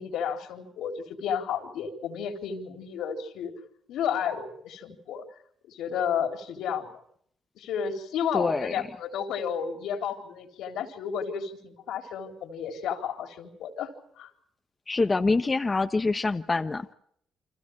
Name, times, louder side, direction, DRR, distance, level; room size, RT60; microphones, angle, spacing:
voice 1, 0.0-3.5 3.9-5.2 5.7-6.9 7.6-14.3, left 7 dB, 80° left, 6 dB, 3.9 m, -32 dB
voice 2, 8.3-8.7 14.9-16.9, left 3 dB, 25° left, 8 dB, 1.1 m, -25 dB
29.5 x 25.5 x 4.9 m, 0.67 s
cardioid pair, 90°, 0 cm